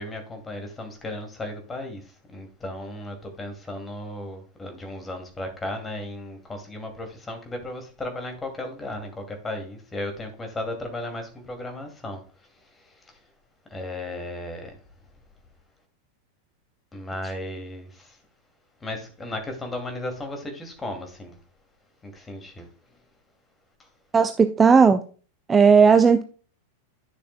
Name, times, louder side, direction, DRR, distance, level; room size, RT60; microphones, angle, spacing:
voice 1, 0.0-2.0 2.3-12.2 13.7-14.8 16.9-18.2 18.8-21.4 22.0-22.7, left 1 dB, 15° left, 2.4 m, -35 dB
voice 2, 24.1-25.0 25.5-26.2, right 5 dB, 15° right, 0.5 m, -15 dB
11.0 x 6.6 x 2.2 m
figure-of-eight pair, 90°, 0 cm